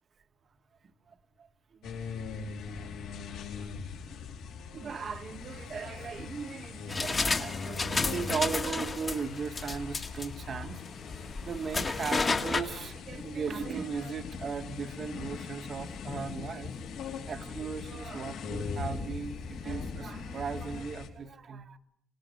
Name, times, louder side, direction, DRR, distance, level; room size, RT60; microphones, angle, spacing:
voice 1, 1.1-1.5 1.8-2.0 2.7-2.9 3.6-3.7 4.7-10.8 11.4-16.7 17.2-21.8, right 5 dB, 35° right, 1.3 m, -37 dB
sound 1, 1.8-21.1, left 5 dB, 70° left, 4.1 m, -42 dB
sound 2, 5.4-7.7 8.1-8.2 8.6-9.0 9.3-20.8, left 4 dB, 40° left, 1.8 m, -43 dB
sound 3, 6.9-12.6, left 3 dB, 20° left, 1.7 m, -32 dB
26.0 x 19.0 x 9.5 m
cardioid pair, 165°, 0 cm